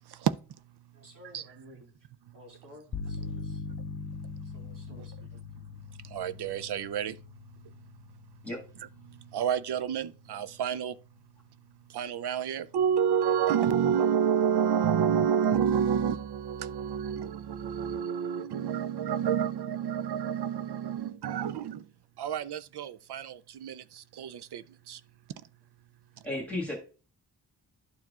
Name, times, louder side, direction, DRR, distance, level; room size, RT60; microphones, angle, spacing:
voice 1, 0.9-2.1 2.3-3.6 4.4-5.4, equal, 50° right, 2.4 m, -54 dB
sound 1, 2.9-10.6, left 5 dB, 35° left, 0.6 m, -42 dB
voice 2, 6.0-7.2 7.6-7.8 9.1-11.0 11.9-21.9 22.2-25.0, right 8 dB, 70° right, 0.5 m, -29 dB
voice 3, 26.2-26.8, left 1 dB, 5° left, 1.7 m, -33 dB
12.0 x 4.6 x 2.4 m
wide cardioid pair, 145°, 41 cm